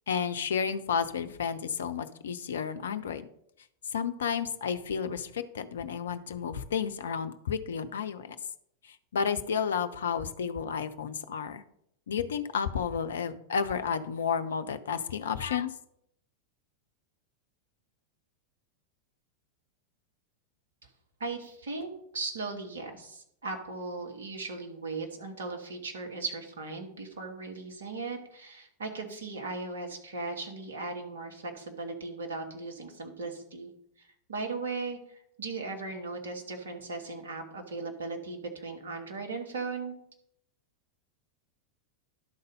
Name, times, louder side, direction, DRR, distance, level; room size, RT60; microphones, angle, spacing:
voice 1, 0.1-3.3 3.9-8.4 9.1-11.6 12.1-15.7, left 7 dB, 65° left, 10 dB, 0.5 m, -31 dB
voice 2, 21.2-33.7 34.3-40.0, right 3 dB, 65° right, 3 dB, 1.4 m, -37 dB
11.5 x 4.0 x 5.4 m, 0.73 s
figure-of-eight pair, 90°, 0 cm